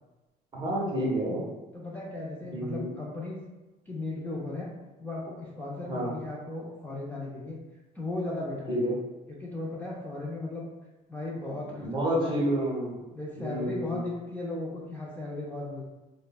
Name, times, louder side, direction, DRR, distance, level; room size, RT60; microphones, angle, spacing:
voice 1, 0.5-1.5 2.5-2.9 5.9-6.1 8.7-9.0 11.8-13.0 13.4-14.0, right 1 dB, 30° right, -3 dB, 0.8 m, -29 dB
voice 2, 1.7-3.4 3.9-4.7 5.0-7.6 7.9-8.8 9.3-10.7 11.1-12.4 13.1-15.8, left 2 dB, 10° left, -6 dB, 0.4 m, -36 dB
3.2 x 2.0 x 2.2 m, 1.1 s
cardioid pair, 110°, 17 cm